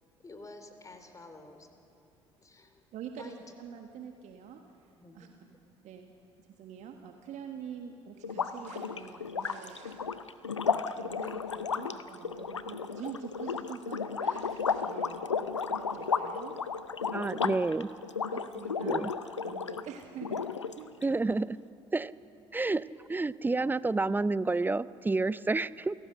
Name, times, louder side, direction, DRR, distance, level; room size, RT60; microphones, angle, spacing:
voice 1, 0.2-1.7 2.4-2.8 3.2-3.3 5.0-5.3, left 2 dB, 20° left, 7 dB, 3.2 m, -50 dB
voice 2, 2.9-3.3 3.6-5.3 5.8-6.1 6.4-10.0 10.6-16.6 17.0-17.4 18.3-19.1 19.4-20.5 20.7-20.9, right 8 dB, 50° right, 4 dB, 1.5 m, -46 dB
sound 1, 8.2-19.8 20.2-21.0, left 5 dB, 85° left, 0.6 m, -33 dB
voice 3, 17.1-17.9 18.8-19.1 21.0-21.6 21.9-22.1 22.5-25.9, right 3 dB, 15° right, 18 dB, 0.5 m, -29 dB
28.5 x 17.5 x 6.5 m, 2.6 s
figure-of-eight pair, 55°, 15 cm